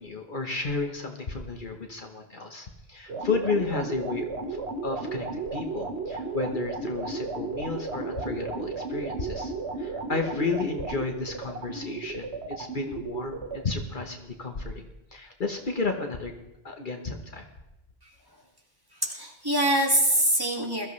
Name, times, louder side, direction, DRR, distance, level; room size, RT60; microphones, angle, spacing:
voice 1, 0.0-9.5 9.8-16.3 16.6-17.4, left 3 dB, 50° left, 4 dB, 1.2 m, -32 dB
sound 1, 3.1-13.6, right 3 dB, 80° right, 1.4 m, -34 dB
voice 2, 18.9-20.9, right 1 dB, 20° right, -1 dB, 2.1 m, -24 dB
21.5 x 14.0 x 3.2 m, 0.93 s
omnidirectional pair, 1.1 m